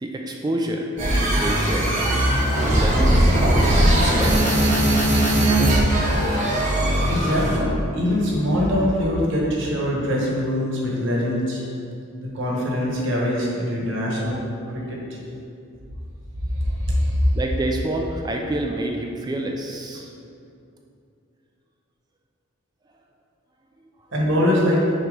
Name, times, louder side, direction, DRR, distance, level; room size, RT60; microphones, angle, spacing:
voice 1, 0.0-1.9 2.6-4.7 14.3-14.4 17.3-20.1, right 1 dB, 20° right, 1 dB, 0.3 m, -28 dB
sound 1, 1.0-7.7, right 1 dB, 35° right, 0.9 m, -19 dB
voice 2, 7.1-7.7 7.9-11.6 12.2-14.4 14.7-15.0 16.5-17.3 24.1-24.8, left 1 dB, 60° right, -4 dB, 1.3 m, -23 dB
6.6 x 3.0 x 5.1 m, 2.6 s
head